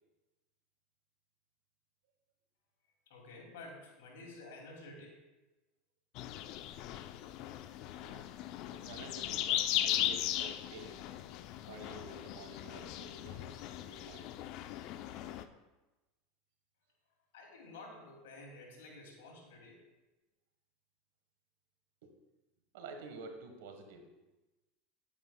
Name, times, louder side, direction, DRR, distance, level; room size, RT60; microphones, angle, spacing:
voice 1, 3.1-5.2 17.3-19.8, left 2 dB, 80° left, -1 dB, 2.6 m, -51 dB
sound 1, 6.1-15.4, left 12 dB, 55° left, 0.4 m, -38 dB
voice 2, 8.7-11.0 11.7-13.5 13.8-14.3 22.7-24.1, right 3 dB, 75° right, 5 dB, 1.3 m, -50 dB
10.0 x 8.8 x 2.3 m, 1.1 s
supercardioid pair, 115°, 0 cm